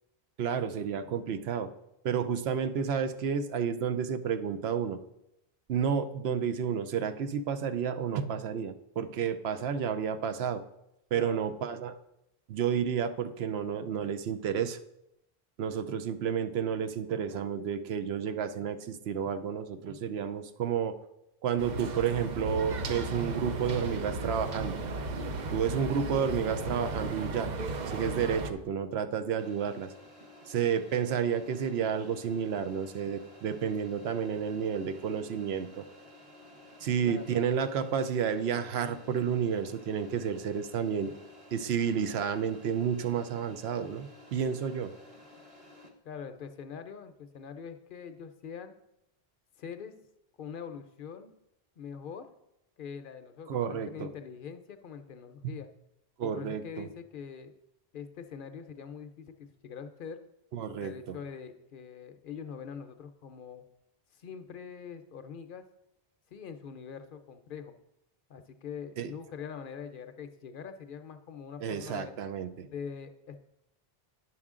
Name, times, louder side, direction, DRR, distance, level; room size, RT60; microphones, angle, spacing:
voice 1, 0.4-1.7 2.0-5.0 5.7-10.6 11.1-11.9 12.5-14.8 15.6-20.9 21.4-24.8 25.5-27.5 27.9-29.9 30.5-35.8 36.8-41.1 41.5-44.9 53.5-54.1 55.4-55.6 56.2-56.9 60.5-61.2 69.0-69.1 71.6-72.7, right 7 dB, 85° right, 9 dB, 0.9 m, -31 dB
sound 1, 21.6-28.5, right 2 dB, 50° right, 0.7 m, -35 dB
sound 2, 29.4-45.9, left 1 dB, 35° right, 1.0 m, -53 dB
voice 2, 37.0-37.4 46.0-48.7 49.6-49.9 50.4-51.3 51.8-52.3 52.8-55.7 56.2-57.5 57.9-60.2 60.8-63.7 64.1-65.6 66.3-67.7 68.3-72.2 72.7-73.4, left 6 dB, 60° left, 9 dB, 0.7 m, -43 dB
9.9 x 6.2 x 3.6 m, 0.84 s
omnidirectional pair, 1.0 m